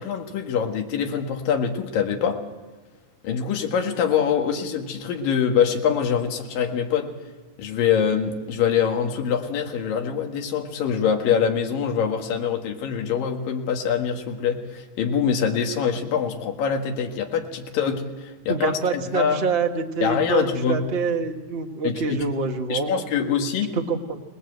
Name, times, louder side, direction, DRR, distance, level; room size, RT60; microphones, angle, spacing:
voice 1, 0.0-2.4 3.2-7.1 7.6-19.4 20.0-20.9 21.8-22.2 22.7-23.7, left 7 dB, 75° left, 2 dB, 3.4 m, -24 dB
voice 2, 18.5-23.0 23.9-24.2, right 5 dB, 80° right, 3 dB, 0.5 m, -26 dB
26.0 x 20.0 x 7.9 m, 1.3 s
omnidirectional pair, 4.0 m